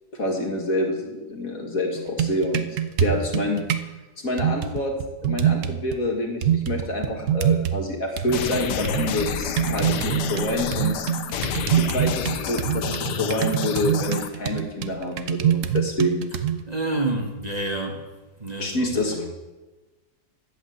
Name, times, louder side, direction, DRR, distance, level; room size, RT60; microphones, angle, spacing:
voice 1, 0.1-2.6 3.0-3.6 4.2-4.9 5.2-11.0 11.8-16.3 18.6-19.3, left 1 dB, 55° left, 1 dB, 2.3 m, -27 dB
sound 1, 2.0-3.9 4.4-6.0 6.4-7.9 8.2-16.6, right 10 dB, 60° right, 1.0 m, -25 dB
sound 2, 8.3-14.3, left 8 dB, 85° left, 1.4 m, -30 dB
voice 2, 16.7-18.1 18.4-19.2, right 2 dB, 25° right, 0 dB, 1.7 m, -28 dB
11.5 x 8.0 x 7.8 m, 1.2 s
omnidirectional pair, 1.8 m